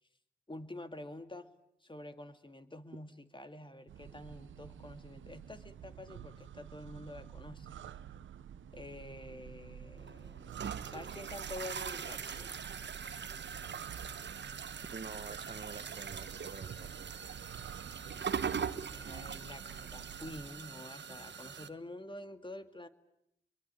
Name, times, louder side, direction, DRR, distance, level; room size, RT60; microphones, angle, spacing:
voice 1, 0.5-1.5 1.8-7.7 8.7-12.6 18.9-22.9, left 1 dB, 25° left, 9 dB, 2.4 m, -48 dB
sound 1, 3.9-20.5, right 9 dB, 90° right, 1.0 m, -49 dB
sound 2, 10.0-21.7, right 7 dB, 65° right, 1.3 m, -41 dB
voice 2, 14.9-16.9, right 4 dB, 45° right, 13 dB, 1.2 m, -47 dB
29.0 x 22.5 x 9.0 m, 0.78 s
cardioid pair, 45°, 19 cm